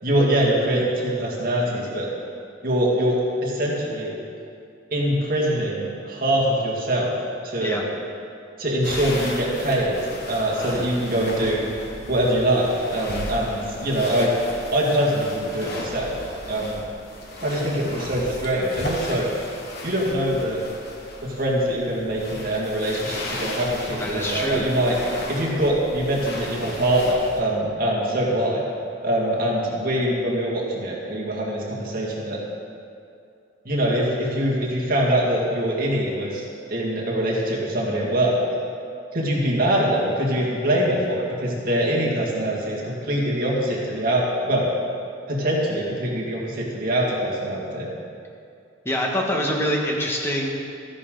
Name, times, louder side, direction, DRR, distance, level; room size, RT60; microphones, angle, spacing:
voice 1, 0.0-2.1 2.6-4.2 4.9-7.1 7.4-7.8 8.6-10.0 10.3-11.6 12.1-14.3 14.7-16.2 16.5-16.8 17.4-19.3 19.8-20.6 21.2-25.0 25.3-28.6 29.0-32.4 33.7-36.4 36.7-38.4 39.1-44.7 45.3-47.9, right 1 dB, 50° right, -4 dB, 2.0 m, -23 dB
sound 1, 8.8-27.4, left 1 dB, 55° left, 1.5 m, -35 dB
voice 2, 24.0-24.6 48.8-50.5, equal, 15° left, -2 dB, 1.4 m, -25 dB
13.5 x 10.0 x 3.9 m, 2.4 s
head